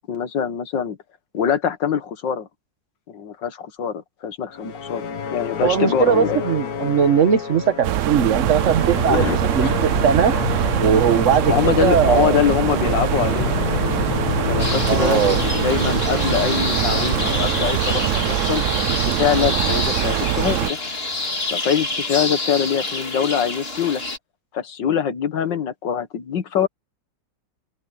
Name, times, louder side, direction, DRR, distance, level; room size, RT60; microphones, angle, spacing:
voice 1, 0.1-1.0 1.3-2.5 3.1-5.0 5.3-6.4 9.1-9.8 11.5-13.5 14.5-18.6 19.0-20.8 21.5-24.0 24.5-26.7, left 8 dB, 90° left, 2.2 m, -23 dB
sound 1, 4.5-21.4, left 8 dB, 60° left, 1.7 m, -29 dB
voice 2, 5.6-9.2 9.5-10.3 10.8-12.4 14.9-15.4, right 7 dB, 45° right, 1.5 m, -19 dB
sound 2, 7.8-20.7, right 14 dB, 90° right, 0.6 m, -23 dB
sound 3, 14.6-24.2, left 2 dB, 35° left, 2.8 m, -27 dB
open air
omnidirectional pair, 1.9 m